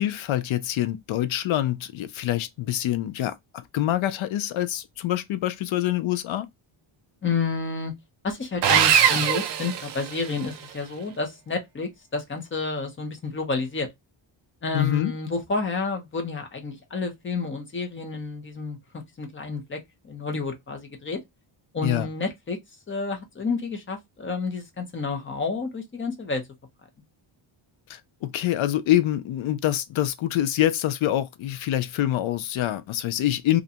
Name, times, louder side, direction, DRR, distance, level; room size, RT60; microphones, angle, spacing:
voice 1, 0.0-6.5 14.7-15.1 21.8-22.1 27.9-33.6, left 13 dB, 70° left, 0.5 m, -25 dB
voice 2, 7.2-7.9 8.2-13.9 14.6-18.8 19.2-21.2 21.7-22.6 22.9-26.4, left 4 dB, 25° left, 0.6 m, -30 dB
Sawing, 8.6-10.5, right 8 dB, 60° right, 0.5 m, -21 dB
2.5 x 2.1 x 2.7 m
wide cardioid pair, 175°, 50 cm